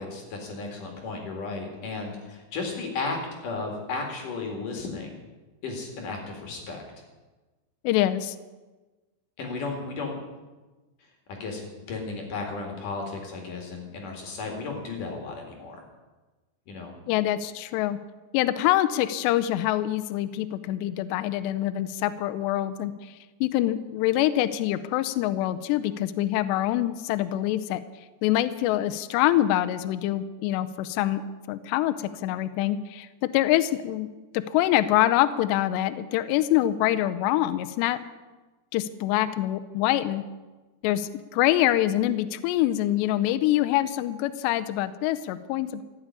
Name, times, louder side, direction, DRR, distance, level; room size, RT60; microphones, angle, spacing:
voice 1, 0.0-3.2 3.4-5.2 5.6-6.8 9.4-10.1 11.3-15.8 16.7-16.9, left 3 dB, 55° left, 2 dB, 3.2 m, -34 dB
voice 2, 7.8-8.4 17.1-18.0 18.3-23.1 23.4-27.8 28.2-31.2 31.5-38.0 38.7-40.2 40.8-45.8, left 14 dB, 80° left, 12 dB, 2.8 m, -25 dB
15.0 x 8.8 x 9.6 m, 1.2 s
omnidirectional pair, 5.1 m